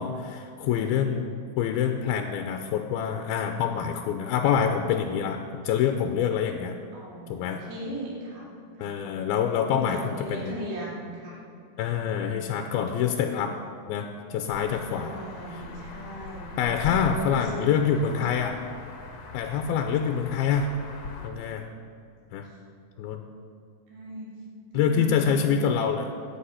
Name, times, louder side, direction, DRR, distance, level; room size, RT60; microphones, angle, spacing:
voice 1, 0.0-6.8 7.3-7.6 8.8-10.6 11.8-13.5 13.9-15.2 16.6-18.6 19.3-20.7 21.2-21.7 22.3-22.5 23.0-23.2 24.7-26.1, left 7 dB, 80° left, 5 dB, 2.4 m, -26 dB
voice 2, 0.6-0.9 6.9-8.5 8.7-9.0 9.5-11.4 14.8-17.7 18.0-18.3 22.4-22.6 23.9-24.3 24.7-25.6, right 1 dB, 90° right, -4 dB, 4.7 m, -38 dB
sound 1, 14.5-21.3, left 5 dB, 55° left, 2.1 m, -41 dB
15.5 x 9.3 x 5.7 m, 2.4 s
omnidirectional pair, 4.6 m